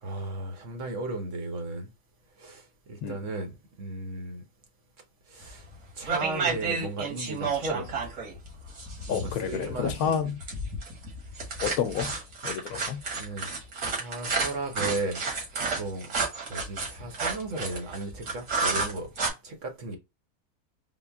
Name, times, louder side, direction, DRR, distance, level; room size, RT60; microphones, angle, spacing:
voice 1, 0.0-1.9 2.4-4.4 5.3-5.6 6.0-7.9 9.1-10.3 13.1-13.5 13.8-15.3 15.7-16.1 16.5-19.1 19.4-20.0, right 2 dB, 55° right, 1.0 m, -35 dB
sound 1, 5.5-5.7 6.1-19.3, right 4 dB, 90° right, 1.9 m, -31 dB
voice 2, 9.1-10.4 11.6-12.1 12.4-13.0, left 8 dB, 75° left, 1.0 m, -29 dB
3.8 x 2.2 x 3.4 m
omnidirectional pair, 1.6 m